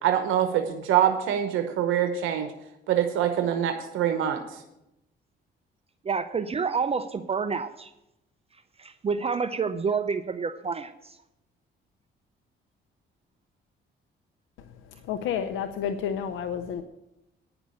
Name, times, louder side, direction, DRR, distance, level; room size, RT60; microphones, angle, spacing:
voice 1, 0.0-2.5 2.9-4.6, right 10 dB, 85° right, 6 dB, 1.0 m, -25 dB
voice 2, 6.0-7.9 8.8-11.2, right 5 dB, 30° right, 10 dB, 0.6 m, -28 dB
voice 3, 15.0-16.8, left 8 dB, 90° left, 7 dB, 0.7 m, -30 dB
9.7 x 6.0 x 8.4 m, 0.88 s
cardioid pair, 90°, 20 cm